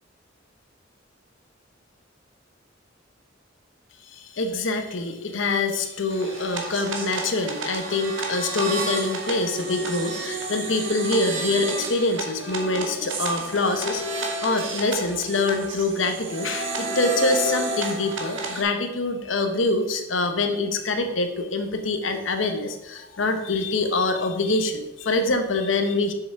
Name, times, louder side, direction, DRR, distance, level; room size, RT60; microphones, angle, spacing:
voice 1, 4.1-26.1, left 3 dB, 75° left, 6 dB, 1.0 m, -25 dB
sound 1, 6.1-18.6, right 2 dB, 70° right, 1.4 m, -31 dB
7.9 x 6.8 x 3.6 m, 0.97 s
head